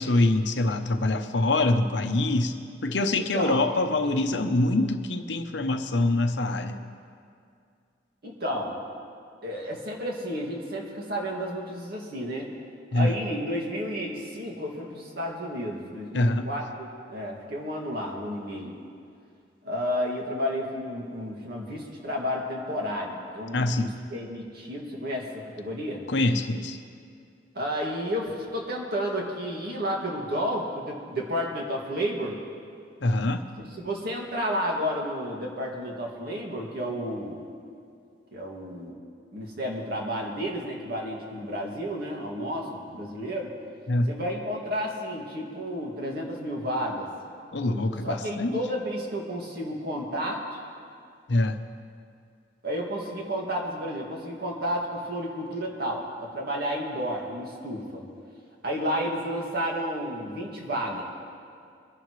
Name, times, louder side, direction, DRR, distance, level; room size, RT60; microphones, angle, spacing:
voice 1, 0.0-2.6 2.8-6.9 12.9-13.1 16.1-16.5 23.5-23.9 26.1-26.8 33.0-33.4 43.9-44.1 47.5-48.6 51.3-51.6, left 2 dB, 70° left, 8 dB, 0.8 m, -24 dB
voice 2, 3.1-3.7 4.2-4.5 8.2-8.8 9.4-12.5 12.9-18.7 19.6-26.0 27.5-32.4 33.6-37.4 38.3-39.0 39.3-43.5 44.1-47.1 48.0-50.4 52.6-58.0 58.6-61.0, equal, 55° right, -2 dB, 2.2 m, -31 dB
23.5 x 10.5 x 3.2 m, 2.3 s
head